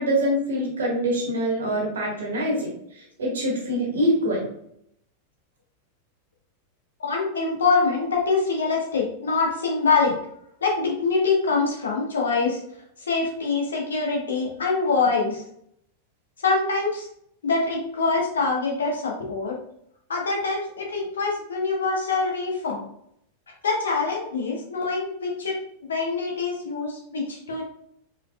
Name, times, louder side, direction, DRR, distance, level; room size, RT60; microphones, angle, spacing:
voice 1, 0.0-2.8 3.2-4.4, equal, 65° right, -1 dB, 1.6 m, -24 dB
voice 2, 7.0-10.2 10.6-12.6 13.1-15.4 16.4-17.1 17.4-19.6 20.1-22.9 23.6-25.6 25.9-27.6, left 4 dB, 70° left, -1 dB, 1.2 m, -24 dB
4.7 x 4.2 x 2.3 m, 0.72 s
figure-of-eight pair, 90°, 0 cm